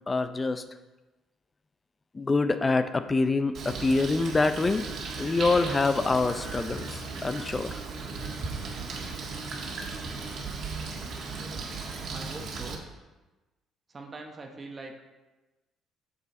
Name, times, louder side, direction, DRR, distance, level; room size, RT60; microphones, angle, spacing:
voice 1, 0.1-0.6 2.1-4.8 5.2-7.8, left 3 dB, 25° left, 10 dB, 0.5 m, -25 dB
Bird, 3.5-12.7, right 4 dB, 55° right, 1.5 m, -36 dB
Singing, 4.2-10.4, right 4 dB, 80° right, 1.8 m, -46 dB
voice 2, 12.1-12.9 13.9-15.0, right 3 dB, 35° right, 2 dB, 1.0 m, -42 dB
6.7 x 6.3 x 4.3 m, 1.1 s
cardioid pair, 90°, 0 cm